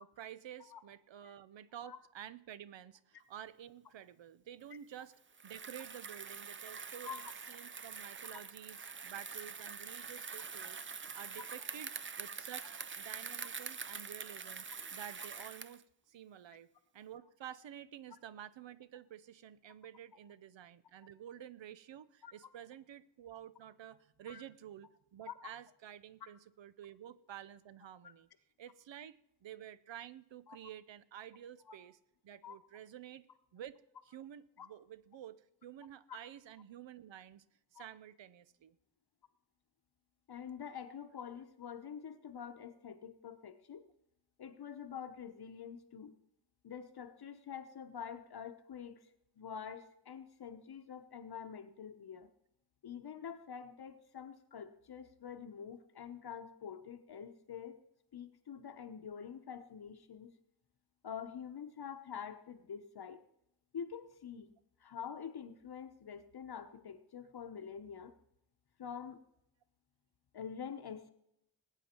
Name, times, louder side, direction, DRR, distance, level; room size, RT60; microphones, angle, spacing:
voice 1, 0.0-16.7 16.9-28.3 28.6-32.0 32.2-33.3 33.5-37.4 37.7-38.8, right 10 dB, 80° right, 16 dB, 0.8 m, -51 dB
Bicycle, 5.3-15.8, right 5 dB, 30° right, 0.5 m, -45 dB
voice 2, 40.3-43.9 44.4-46.1 46.6-49.1 49.4-52.3 52.8-57.8 58.1-60.3 61.0-63.2 63.7-64.5 64.8-68.1 68.8-69.2 70.3-71.1, left 7 dB, 60° left, 8 dB, 0.9 m, -46 dB
20.0 x 9.1 x 4.4 m, 0.81 s
wide cardioid pair, 145°, 44 cm